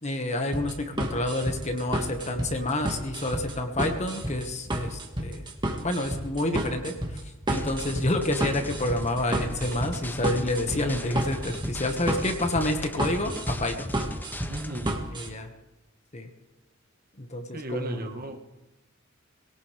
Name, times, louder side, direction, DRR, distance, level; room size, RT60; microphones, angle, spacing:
voice 1, 0.0-5.5 5.8-7.2 7.5-13.9 15.1-15.5 16.1-16.3 17.2-18.1, left 1 dB, 35° left, 5 dB, 1.7 m, -29 dB
sound 1, 0.5-15.3, right 1 dB, 20° right, 1.9 m, -31 dB
sound 2, 7.5-15.0, left 1 dB, 10° left, 0.7 m, -39 dB
voice 2, 14.5-15.0 17.5-18.4, right 1 dB, 45° right, 5 dB, 1.6 m, -35 dB
21.5 x 18.5 x 3.5 m, 1.1 s
head